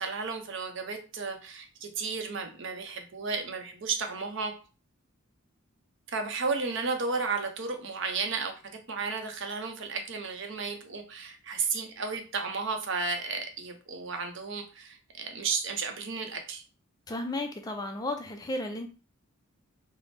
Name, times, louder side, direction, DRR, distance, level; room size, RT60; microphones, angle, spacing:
voice 1, 0.0-4.5 6.1-16.6, right 4 dB, 55° right, 5 dB, 0.6 m, -33 dB
voice 2, 17.1-18.9, left 1 dB, 15° left, 5 dB, 0.3 m, -33 dB
4.2 x 2.0 x 3.2 m, 0.35 s
head